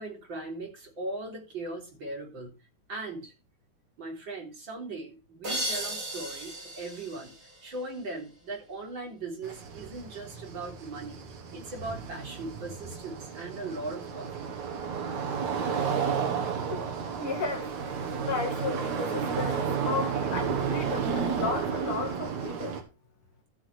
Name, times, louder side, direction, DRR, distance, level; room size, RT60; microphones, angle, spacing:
voice 1, 0.0-2.5 2.9-3.3 4.0-7.3 7.6-11.2 11.5-14.5, right 2 dB, 40° right, 4.3 m, -39 dB
sound 1, 5.4-8.2, right 1 dB, 20° right, 3.8 m, -36 dB
sound 2, 9.4-22.8, right 6 dB, 70° right, 3.3 m, -32 dB
voice 2, 17.2-17.7 18.3-22.8, left 4 dB, 50° left, 3.0 m, -34 dB
14.0 x 8.9 x 3.3 m
omnidirectional pair, 3.3 m